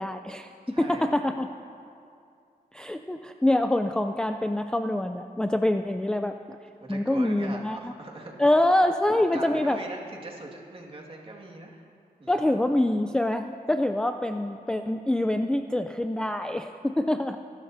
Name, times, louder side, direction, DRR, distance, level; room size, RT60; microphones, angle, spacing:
voice 1, 0.0-1.5 2.7-6.6 6.9-7.9 8.4-9.8 12.3-17.4, left 1 dB, 5° left, 6 dB, 0.4 m, -25 dB
voice 2, 0.7-1.1 6.8-8.3 9.3-11.8 12.2-12.6, right 2 dB, 35° right, -1 dB, 1.9 m, -41 dB
27.0 x 12.5 x 2.7 m, 2.4 s
wide cardioid pair, 125°, 16 cm